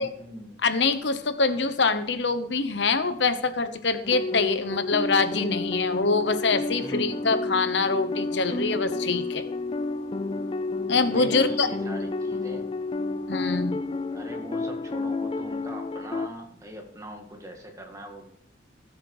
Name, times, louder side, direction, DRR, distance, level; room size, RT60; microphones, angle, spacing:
voice 1, 0.0-0.6 6.7-7.7 11.1-12.7 14.1-18.2, equal, 15° right, 2 dB, 2.1 m, -42 dB
voice 2, 0.6-9.4 10.9-11.7 13.3-13.9, left 4 dB, 70° left, 10 dB, 1.0 m, -25 dB
sound 1, 4.0-16.3, left 3 dB, 30° left, 0.5 m, -30 dB
16.5 x 7.5 x 4.9 m, 0.66 s
head